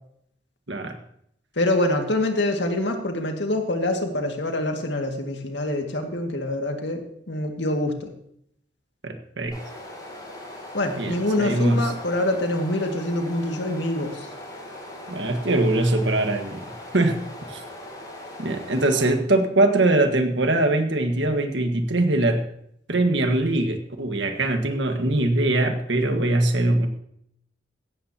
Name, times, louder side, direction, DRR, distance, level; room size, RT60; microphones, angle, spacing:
voice 1, 1.6-8.1 10.7-14.3, left 1 dB, 80° left, 4 dB, 2.1 m, -25 dB
voice 2, 9.0-9.6 11.0-11.9 15.1-16.6 16.9-17.2 17.5-17.6 18.4-22.4 22.9-26.9, right 2 dB, 85° right, 5 dB, 1.6 m, -22 dB
sound 1, 9.5-19.1, left 1 dB, 25° left, 6.1 m, -40 dB
16.5 x 13.5 x 2.9 m, 0.72 s
head